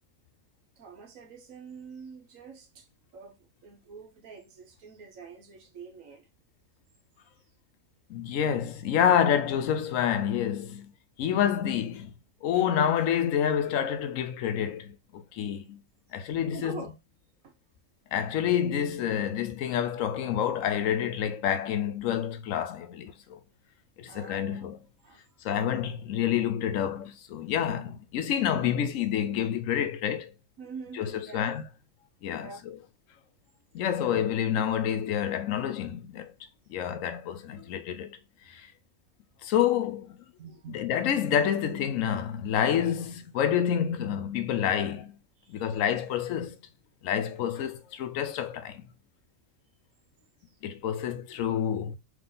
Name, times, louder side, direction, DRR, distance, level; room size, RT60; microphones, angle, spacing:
voice 1, 0.8-2.9 3.1-6.3 16.1-16.3 16.5-16.9 17.4-17.5 24.1-24.7 25.0-25.4 30.6-31.5 32.4-32.6 40.4-40.8 45.4-46.0 50.5-50.6, right 5 dB, 80° right, 1.3 m, -46 dB
voice 2, 8.1-10.9 11.2-12.1 12.4-15.8 16.1-16.8 18.1-23.4 24.0-24.8 25.4-30.3 31.0-31.6 32.2-32.8 33.7-36.3 36.7-38.2 38.5-38.6 39.4-40.2 40.7-45.2 45.5-46.6 47.0-48.8 50.6-52.0, left 9 dB, 80° left, 1.0 m, -28 dB
3.7 x 3.3 x 3.7 m
omnidirectional pair, 1.4 m